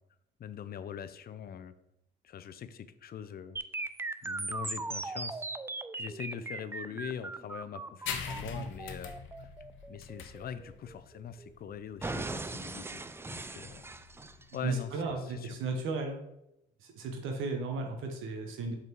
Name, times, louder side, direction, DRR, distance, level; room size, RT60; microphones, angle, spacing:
voice 1, 0.4-1.7 2.2-3.6 4.2-5.5 5.9-9.5 9.9-13.0 13.3-13.9 14.5-15.6, left 8 dB, 50° left, 13 dB, 0.5 m, -42 dB
sound 1, 3.6-11.5 12.0-14.6, right 3 dB, 10° right, 0.3 m, -39 dB
sound 2, 8.1-15.2, left 6 dB, 80° left, 0.8 m, -43 dB
voice 2, 14.6-16.2 16.8-18.7, right 3 dB, 85° right, 4 dB, 0.9 m, -35 dB
5.4 x 4.0 x 4.5 m, 0.84 s
cardioid pair, 90°, 20 cm